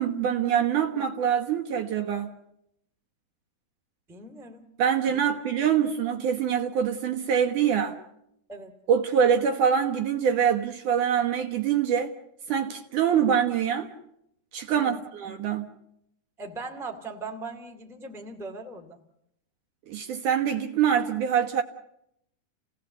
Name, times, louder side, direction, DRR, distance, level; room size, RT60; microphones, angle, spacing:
voice 1, 0.0-2.3 4.8-8.0 8.9-12.1 12.5-13.9 14.5-15.7 19.9-21.6, right 8 dB, 65° right, 2.5 m, -24 dB
voice 2, 4.1-4.6 5.1-5.2 8.5-8.7 14.7-15.0 16.4-19.0, right 3 dB, ahead, 1.3 m, -39 dB
29.5 x 17.5 x 8.1 m
omnidirectional pair, 4.5 m